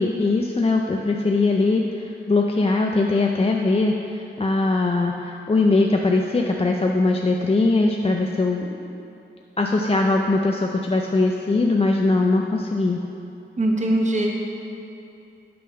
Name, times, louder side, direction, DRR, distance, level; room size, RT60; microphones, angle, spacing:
voice 1, 0.0-9.0 9.6-13.0, left 3 dB, 30° left, 1 dB, 0.4 m, -21 dB
voice 2, 13.6-14.3, right 1 dB, 40° right, -1 dB, 1.0 m, -21 dB
8.4 x 3.7 x 6.3 m, 2.9 s
wide cardioid pair, 100°, 20 cm